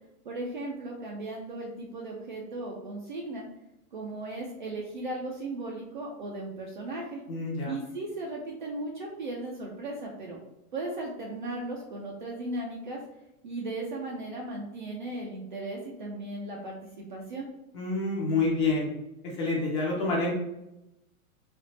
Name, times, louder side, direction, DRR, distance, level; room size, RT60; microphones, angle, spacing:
voice 1, 0.2-3.4 3.9-7.2 7.7-10.4 10.7-13.0 13.4-17.5, right 2 dB, 35° right, -1 dB, 0.4 m, -36 dB
voice 2, 7.3-7.7 17.7-18.9 19.2-20.3, left 3 dB, 20° left, -4 dB, 0.6 m, -27 dB
3.4 x 2.4 x 3.9 m, 0.90 s
supercardioid pair, 165°, 43 cm